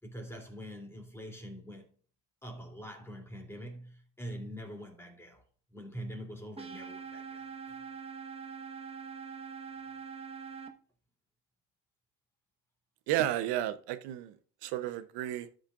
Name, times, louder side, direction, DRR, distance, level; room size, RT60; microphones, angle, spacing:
voice 1, 0.0-1.9 2.4-5.4 5.7-7.8, equal, 5° left, 3.0 m, -44 dB
sound 1, 6.6-10.7, right 6 dB, 15° right, 1.2 m, -43 dB
voice 2, 13.1-14.4 14.6-15.5, right 13 dB, 70° right, 0.9 m, -32 dB
13.0 x 6.5 x 2.5 m
cardioid pair, 120°, 41 cm